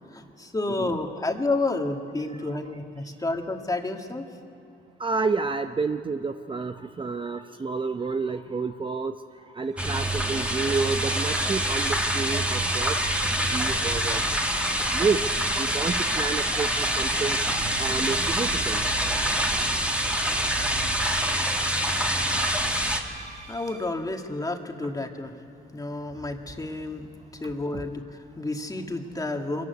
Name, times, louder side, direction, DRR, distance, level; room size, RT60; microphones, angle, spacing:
voice 1, 0.1-4.3 23.5-29.7, left 2 dB, 20° left, 4 dB, 1.9 m, -30 dB
voice 2, 5.0-9.1 9.5-13.1 13.5-14.2 14.9-15.3 15.6-17.4 17.8-18.8 20.9-21.1 23.1-23.2, right 4 dB, 25° right, 7 dB, 0.7 m, -29 dB
sound 1, 9.7-23.9, right 5 dB, 70° right, 2.9 m, -42 dB
sound 2, 9.8-23.0, right 1 dB, 5° right, 2.0 m, -26 dB
24.0 x 15.0 x 9.5 m, 2.5 s
cardioid pair, 90°, 20 cm